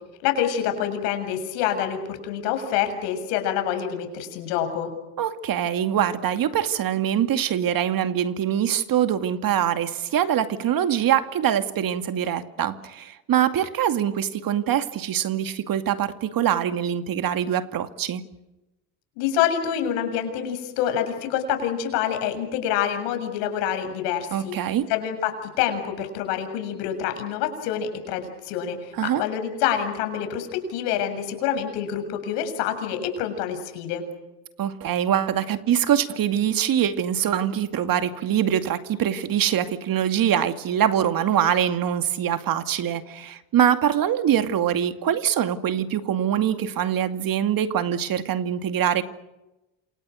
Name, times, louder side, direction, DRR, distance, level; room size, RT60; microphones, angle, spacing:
voice 1, 0.2-4.9 19.2-24.5 24.9-34.0, left 9 dB, 80° left, 7 dB, 7.2 m, -26 dB
voice 2, 5.2-18.2 24.3-24.9 28.9-29.2 34.6-49.0, right 10 dB, 50° right, 9 dB, 2.4 m, -23 dB
28.5 x 27.5 x 6.5 m, 0.99 s
supercardioid pair, 90°, 43 cm